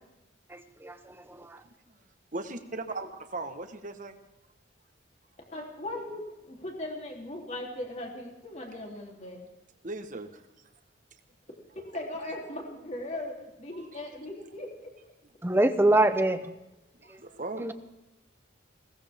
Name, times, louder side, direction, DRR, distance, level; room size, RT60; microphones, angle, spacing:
voice 1, 0.5-1.6 15.4-16.5 17.6-17.7, right 1 dB, 10° right, 9 dB, 1.0 m, -25 dB
voice 2, 2.3-4.2 9.8-10.4 17.0-17.7, right 2 dB, 40° right, 7 dB, 1.5 m, -38 dB
voice 3, 5.5-9.4 11.7-14.9, left 1 dB, 35° left, 0 dB, 3.5 m, -38 dB
21.0 x 18.5 x 3.7 m, 0.96 s
head